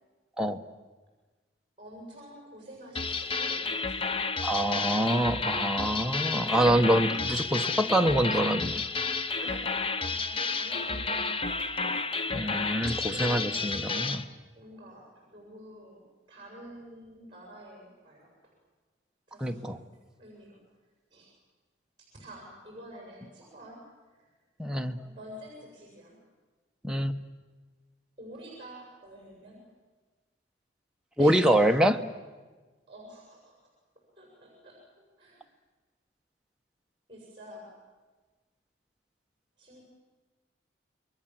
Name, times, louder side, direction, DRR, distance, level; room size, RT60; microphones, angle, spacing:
voice 1, 1.8-4.1 7.4-7.8 9.4-11.3 11.6-12.0 13.0-14.2 14.5-16.0 16.3-18.3 19.3-19.8 20.2-20.6 21.1-21.3 22.1-23.8 25.2-26.1 28.2-29.6 31.2-31.8 32.9-33.5 34.2-34.8 35.2-35.4 37.1-37.7 39.6-39.8, right 1 dB, 25° right, -2 dB, 7.2 m, -47 dB
sound 1, 3.0-14.2, left 4 dB, 30° left, 0.8 m, -31 dB
voice 2, 4.4-8.7 12.3-14.2 19.4-19.8 24.6-25.0 26.8-27.2 31.2-32.0, right 1 dB, 5° right, 4 dB, 1.0 m, -25 dB
28.5 x 22.5 x 7.6 m, 1.3 s
head